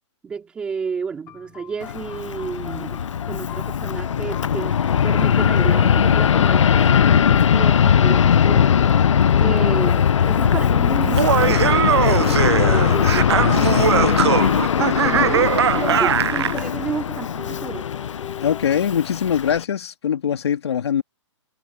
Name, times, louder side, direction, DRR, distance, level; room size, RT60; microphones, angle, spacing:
voice 1, 0.2-3.0 3.3-8.7 9.4-14.7 15.0-17.9, right 6 dB, 5° right, 2.6 m, -31 dB
sound 1, 1.3-19.0, left 12 dB, 15° left, 3.5 m, -42 dB
Fixed-wing aircraft airplane, 1.8-19.6, left 8 dB, 80° left, 0.8 m, -19 dB
Laughter, 11.0-16.6, right 9 dB, 60° right, 0.5 m, -20 dB
voice 2, 15.1-15.5 18.4-21.0, left 8 dB, 60° left, 2.5 m, -22 dB
hypercardioid pair, 175°, 16 cm